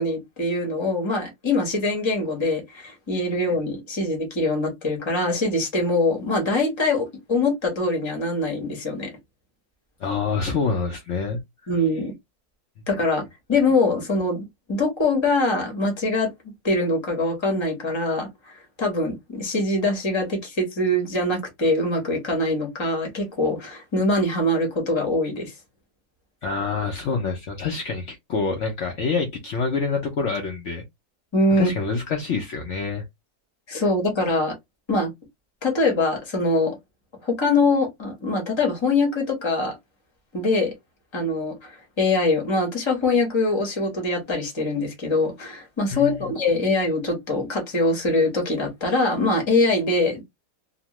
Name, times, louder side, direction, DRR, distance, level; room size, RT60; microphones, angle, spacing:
voice 1, 0.0-9.1 11.7-12.1 12.9-13.2 13.5-16.3 16.6-18.3 18.8-25.5 31.3-31.7 33.7-34.5 34.9-35.1 35.6-36.8 37.2-39.7 40.3-40.7 41.1-50.2, left 2 dB, 25° left, 0.7 m, -23 dB
voice 2, 10.0-11.4 26.4-30.8 31.6-33.0 45.9-46.3, left 4 dB, 70° left, 0.7 m, -26 dB
2.9 x 2.1 x 2.9 m
omnidirectional pair, 1.9 m